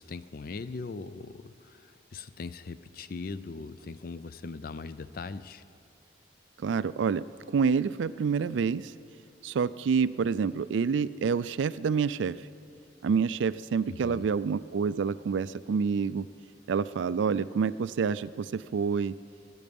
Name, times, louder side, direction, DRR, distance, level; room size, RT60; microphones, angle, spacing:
voice 1, 0.0-5.6 13.9-14.3, left 4 dB, 50° left, 14 dB, 0.4 m, -40 dB
voice 2, 6.6-8.9 9.4-12.4 13.0-16.3 16.7-19.2, right 6 dB, 75° right, 17 dB, 0.3 m, -28 dB
21.5 x 9.4 x 5.3 m, 2.6 s
head